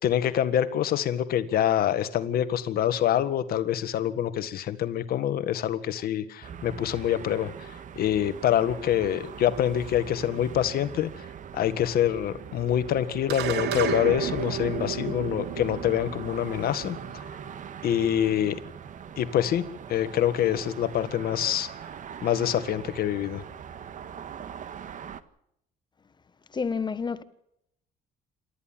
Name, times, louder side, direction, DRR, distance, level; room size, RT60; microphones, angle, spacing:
voice 1, 0.0-11.1 11.5-17.2 17.8-18.5 19.2-19.6 19.9-21.7 22.2-23.4, left 10 dB, 65° left, 1.7 m, -26 dB
sound 1, 6.4-25.2, right 8 dB, 50° right, 1.5 m, -42 dB
sound 2, 13.3-17.9, right 8 dB, 80° right, 2.9 m, -32 dB
voice 2, 26.5-27.2, left 5 dB, 25° left, 1.4 m, -29 dB
28.0 x 13.5 x 7.4 m
cardioid pair, 110°, 17 cm